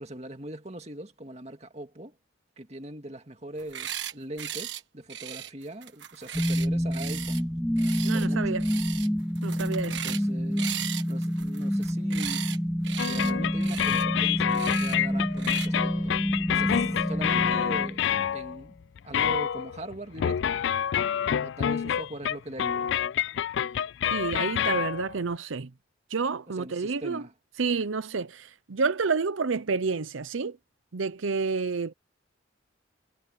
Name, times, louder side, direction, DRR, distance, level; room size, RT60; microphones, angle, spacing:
voice 1, 0.0-2.2 2.6-7.5 8.1-8.6 9.9-10.8 11.1-12.5 13.0-16.2 16.5-18.0 18.3-18.8 19.0-20.6 21.4-22.9 26.5-27.3, right 1 dB, 35° right, 2.2 m, -41 dB
sound 1, 3.6-4.1 4.4-4.8 5.1-7.4 7.8-8.3 8.6-9.1 9.3-10.3 10.6-12.6 12.8-13.3 13.6-14.0 14.5-15.0 15.4-15.7, right 10 dB, 70° right, 1.4 m, -37 dB
sound 2, 6.3-18.3, equal, 5° left, 0.7 m, -28 dB
voice 2, 8.0-8.6 9.4-10.0 24.1-25.7 26.1-27.2 27.6-30.6 30.9-31.9, right 4 dB, 90° right, 0.7 m, -29 dB
sound 3, 13.0-18.7 19.0-25.2, left 9 dB, 70° left, 0.3 m, -28 dB
head